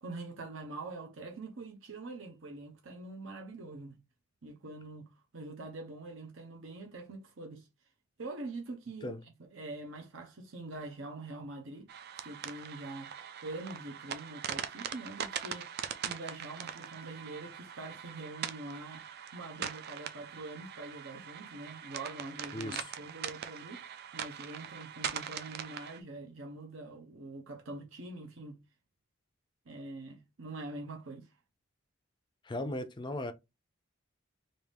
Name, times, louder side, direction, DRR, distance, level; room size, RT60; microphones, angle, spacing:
voice 1, 0.0-3.9 4.4-7.7 8.2-9.2 9.5-11.9 12.2-13.1 13.4-15.7 16.0-19.1 19.3-23.9 24.1-28.6 29.7-31.3, right 2 dB, 70° right, 0.9 m, -44 dB
sound 1, 11.9-26.0, right 8 dB, 50° right, 0.4 m, -42 dB
voice 2, 22.5-22.9 32.4-33.3, left 1 dB, 20° left, 0.4 m, -37 dB
3.5 x 2.6 x 3.4 m
head